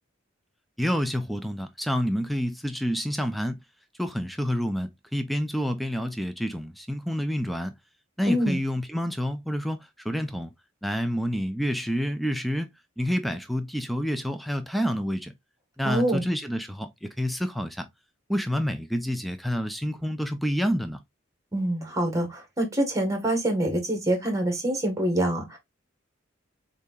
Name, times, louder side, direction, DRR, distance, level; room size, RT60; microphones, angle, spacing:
voice 1, 0.8-3.6 4.0-7.7 8.2-9.8 10.0-10.5 10.8-12.7 13.0-15.3 15.8-17.9 18.3-21.0, equal, ahead, 0.5 m, -28 dB
voice 2, 8.3-8.6 15.8-16.2 21.5-25.6, right 1 dB, 15° right, 1.5 m, -25 dB
6.7 x 2.8 x 2.4 m
head